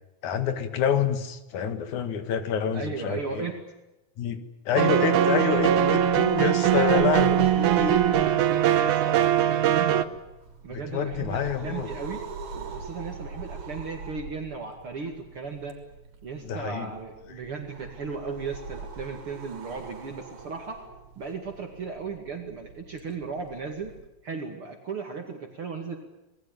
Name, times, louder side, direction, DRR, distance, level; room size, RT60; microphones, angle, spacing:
voice 1, 0.2-3.5 4.2-8.3 10.7-11.9 16.4-16.9, left 7 dB, 80° left, 9 dB, 3.2 m, -27 dB
voice 2, 2.7-3.6 6.9-7.8 8.2-10.0 10.6-12.2 12.5-15.8 16.2-20.8 21.2-23.9 24.2-26.0, right 5 dB, 50° right, 3 dB, 3.0 m, -36 dB
sound 1, 4.8-10.1, right 11 dB, 90° right, 2.6 m, -21 dB
sound 2, 5.3-24.1, right 4 dB, 75° right, 4.9 m, -43 dB
26.5 x 20.0 x 9.1 m, 0.99 s
omnidirectional pair, 3.4 m